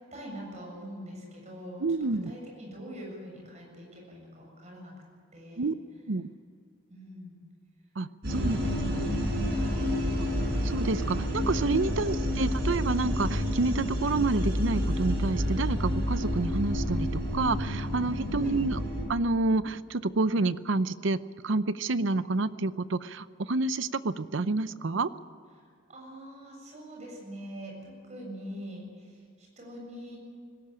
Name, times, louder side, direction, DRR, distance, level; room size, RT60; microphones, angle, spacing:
voice 1, 0.1-5.0 5.3-5.8 6.9-7.4 8.3-9.2 9.4-9.9 18.4-18.6 25.9-30.2, equal, 35° right, -1 dB, 7.3 m, -44 dB
voice 2, 1.8-2.3 5.6-5.7 6.1-6.3 8.0-8.6 8.9-9.0 10.6-18.8 19.1-25.1, right 3 dB, 70° right, 14 dB, 0.7 m, -29 dB
sound 1, 8.2-19.0, equal, 55° right, 6.3 m, -29 dB
20.0 x 17.5 x 8.9 m, 2.2 s
head